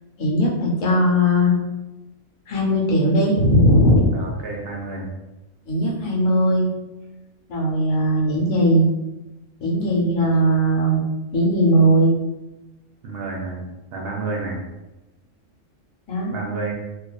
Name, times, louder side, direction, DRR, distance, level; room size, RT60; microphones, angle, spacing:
voice 1, 0.2-1.6 2.5-4.0 5.7-6.7 7.5-8.9 9.6-11.0 11.3-12.1 16.1-16.4, equal, 80° left, -2 dB, 1.1 m, -18 dB
voice 2, 4.1-5.1 13.0-13.6 13.9-14.6 16.3-16.7, right 3 dB, 65° right, -1 dB, 0.6 m, -30 dB
2.7 x 2.2 x 2.2 m, 1.0 s
omnidirectional pair, 1.4 m